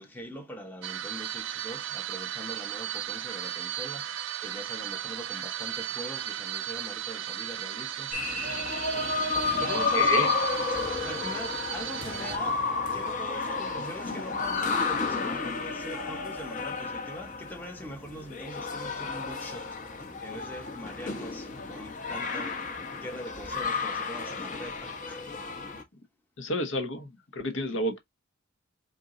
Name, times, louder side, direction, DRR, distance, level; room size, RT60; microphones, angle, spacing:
voice 1, 0.0-8.3 9.6-10.3 10.7-25.3, equal, 10° left, 0.8 m, -42 dB
sound 1, 0.8-12.4, right 11 dB, 60° right, 0.4 m, -35 dB
sound 2, 8.1-25.8, left 4 dB, 35° left, 1.0 m, -31 dB
voice 2, 9.9-10.3 26.4-28.0, left 1 dB, 60° left, 1.0 m, -30 dB
4.5 x 2.7 x 3.7 m
head